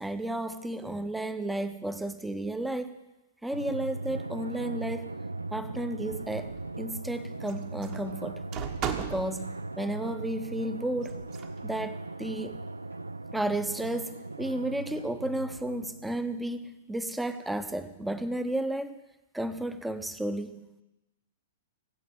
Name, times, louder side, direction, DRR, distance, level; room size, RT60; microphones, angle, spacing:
voice 1, 0.0-3.0 3.4-5.1 5.5-8.4 9.0-11.2 11.6-12.6 13.3-19.0 19.3-20.8, right 1 dB, 5° right, 11 dB, 0.8 m, -33 dB
Drum, 3.5-16.6, right 2 dB, 80° right, 0.4 m, -39 dB
sound 1, 6.1-6.7 7.5-9.4 11.0-11.6, right 8 dB, 30° right, 1.3 m, -37 dB
18.5 x 8.4 x 7.9 m, 1.0 s
figure-of-eight pair, 105°, 0 cm